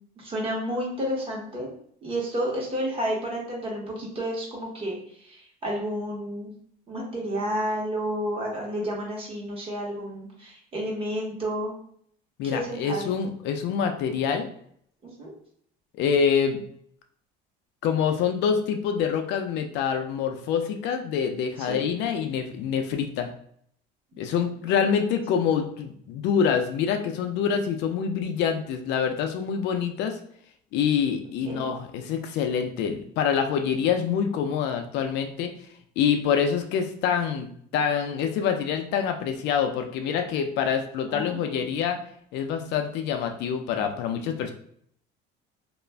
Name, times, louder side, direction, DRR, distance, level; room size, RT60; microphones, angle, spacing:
voice 1, 0.2-1.7 2.0-6.5 6.9-11.7 12.4-13.1 15.0-15.3 21.7-21.8 24.1-24.2 31.4-31.7 41.1-41.6, equal, 30° right, -3 dB, 1.0 m, -31 dB
voice 2, 12.4-14.5 15.9-16.6 17.8-23.3 24.2-30.2 30.7-35.5 36.0-42.0 42.3-44.5, left 7 dB, 60° left, 6 dB, 0.4 m, -26 dB
2.4 x 2.1 x 3.3 m, 0.65 s
cardioid pair, 135°, 20 cm